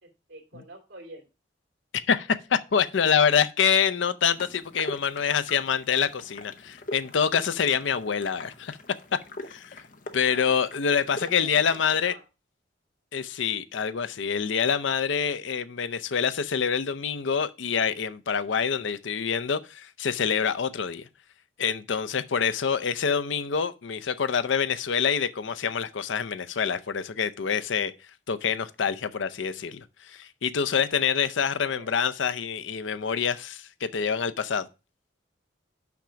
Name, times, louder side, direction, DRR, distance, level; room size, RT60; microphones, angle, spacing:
voice 1, 0.0-1.3 10.2-10.7 11.4-12.2 31.6-31.9, right 2 dB, 75° right, 2.6 m, -46 dB
voice 2, 1.9-8.8 9.5-9.8 10.1-12.1 13.1-21.1 21.6-27.9 28.3-34.7, left 7 dB, 80° left, 0.5 m, -26 dB
sound 1, 4.2-12.0, left 1 dB, 45° left, 0.8 m, -42 dB
5.9 x 5.8 x 5.0 m
head